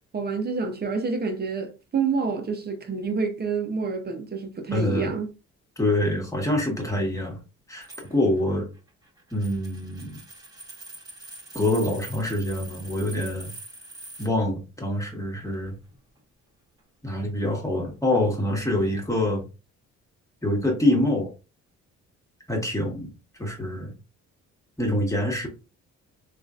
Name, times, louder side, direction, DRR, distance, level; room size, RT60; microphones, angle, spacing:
voice 1, 0.1-5.3, right 5 dB, 35° right, 0.8 m, -28 dB
voice 2, 4.7-5.1 5.8-7.4 7.7-8.7 9.3-10.2 11.5-13.5 14.2-15.8 17.0-19.5 20.4-21.3 22.5-23.1 23.4-23.9 24.8-25.5, left 1 dB, 10° left, 1.4 m, -25 dB
sound 1, 7.8-14.3 15.5-16.2 17.2-17.4, right 3 dB, 10° right, 1.4 m, -44 dB
3.6 x 2.5 x 2.5 m
cardioid pair, 90°, 30 cm